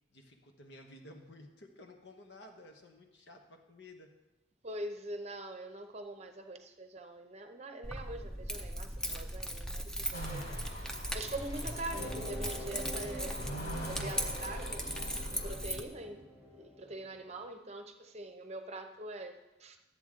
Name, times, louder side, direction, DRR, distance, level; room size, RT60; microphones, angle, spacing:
voice 1, 0.1-4.1 14.1-14.5, left 1 dB, 80° left, 3 dB, 1.2 m, -54 dB
voice 2, 4.6-13.4 13.8-14.9 15.3-16.2 16.5-19.8, right 2 dB, 40° right, 6 dB, 0.7 m, -44 dB
Keys jangling, 7.8-15.8, equal, 5° left, 0.6 m, -38 dB
sound 1, 10.1-15.5, right 1 dB, 60° left, 2.8 m, -44 dB
sound 2, 11.9-17.4, equal, 30° left, 1.3 m, -47 dB
12.0 x 8.1 x 3.7 m, 1.1 s
head